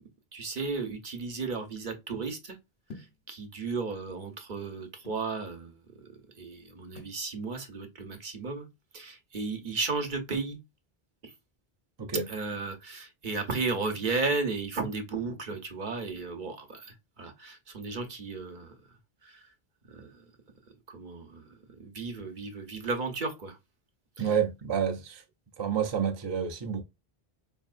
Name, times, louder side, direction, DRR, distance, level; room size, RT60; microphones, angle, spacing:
voice 1, 0.3-2.6 3.3-6.1 6.4-8.7 8.9-10.6 12.3-18.8 19.2-19.4 19.9-20.2 20.9-23.6 24.2-24.4, right 4 dB, 55° right, 0.9 m, -34 dB
sound 1, 2.9-3.2 4.1-5.3 7.0-7.2, left 3 dB, 80° left, 1.2 m, -48 dB
voice 2, 24.2-25.2 25.6-26.8, right 7 dB, 35° right, 0.4 m, -29 dB
4.5 x 2.8 x 2.4 m
omnidirectional pair, 1.0 m